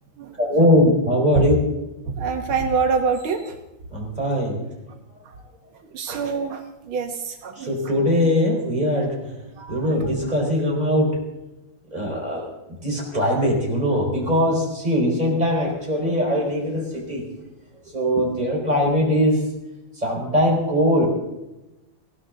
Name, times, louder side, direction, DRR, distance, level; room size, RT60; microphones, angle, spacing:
voice 1, 0.4-1.6 3.9-4.6 7.6-9.2 9.7-11.2 11.9-12.5 12.8-17.3 17.9-19.4 20.0-21.1, equal, 20° right, -1 dB, 5.1 m, -21 dB
voice 2, 2.1-3.6 5.9-7.7 9.6-10.1, right 5 dB, 85° right, 5 dB, 2.1 m, -25 dB
20.5 x 16.0 x 4.0 m, 0.93 s
omnidirectional pair, 2.2 m